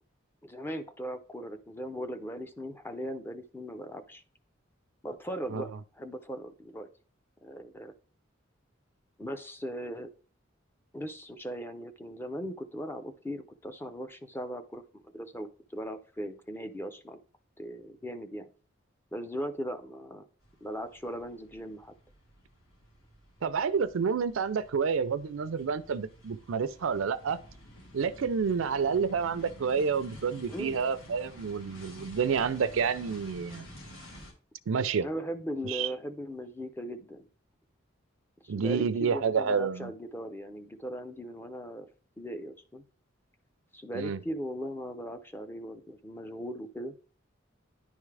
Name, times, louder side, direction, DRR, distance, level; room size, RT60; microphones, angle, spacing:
voice 1, 0.4-4.2 5.0-6.9 7.4-7.9 9.2-10.1 10.9-17.2 17.6-18.5 19.1-20.3 20.6-21.9 30.5-30.8 35.0-37.3 38.4-41.9 42.2-42.8 43.7-46.9, equal, 10° left, 0.5 m, -38 dB
sound 1, 20.4-34.3, equal, 70° left, 1.8 m, -51 dB
voice 2, 23.4-27.4 27.9-33.7 34.7-35.1 35.6-35.9 38.5-39.9 43.9-44.2, right 6 dB, 80° right, 0.4 m, -29 dB
10.0 x 3.6 x 3.3 m
head